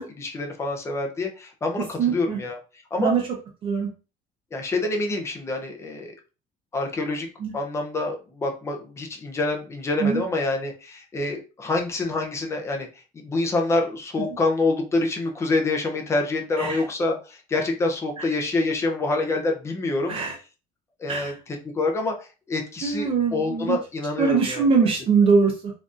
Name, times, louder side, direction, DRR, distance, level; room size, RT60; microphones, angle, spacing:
voice 1, 0.0-2.6 2.9-3.1 4.5-6.1 6.7-7.3 7.5-12.9 13.1-20.2 21.0-21.3 21.7-24.6, left 2 dB, 15° left, 2 dB, 0.5 m, -26 dB
voice 2, 2.0-2.4 3.0-3.2 3.6-3.9 7.4-7.5 10.0-10.2 16.6-16.8 18.2-18.3 20.1-20.3 21.1-21.3 22.8-23.8 24.2-25.7, right 5 dB, 35° right, 0 dB, 0.6 m, -22 dB
3.8 x 2.6 x 2.4 m, 0.33 s
cardioid pair, 180°, 16 cm